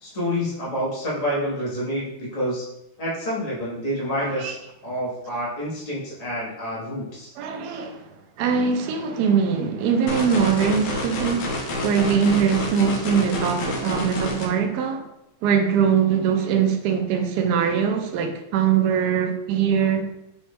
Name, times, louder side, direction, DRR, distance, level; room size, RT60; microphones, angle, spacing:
voice 1, 0.0-2.6 3.0-4.5 4.8-7.3, equal, 45° left, -6 dB, 0.4 m, -28 dB
voice 2, 4.2-4.6 7.4-15.0 15.4-20.1, right 7 dB, 85° right, 4 dB, 0.9 m, -22 dB
sound 1, 10.1-14.5, left 1 dB, 70° left, 1.5 m, -28 dB
5.6 x 2.1 x 3.4 m, 0.86 s
omnidirectional pair, 2.4 m